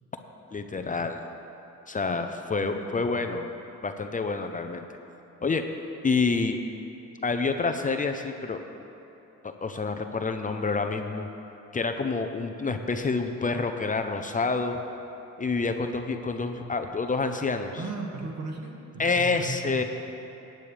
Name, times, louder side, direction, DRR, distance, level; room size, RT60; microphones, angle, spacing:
voice 1, 0.5-1.2 1.9-3.5 3.8-4.8 5.4-5.6 6.0-6.6 7.2-8.6 9.4-11.3 11.7-14.8 15.4-17.8 19.0-19.8, left 4 dB, 25° left, 6 dB, 0.7 m, -28 dB
voice 2, 2.6-3.2 17.8-19.8, right 3 dB, 60° right, 0 dB, 2.0 m, -37 dB
18.0 x 9.1 x 3.4 m, 2.9 s
cardioid pair, 90°, 30 cm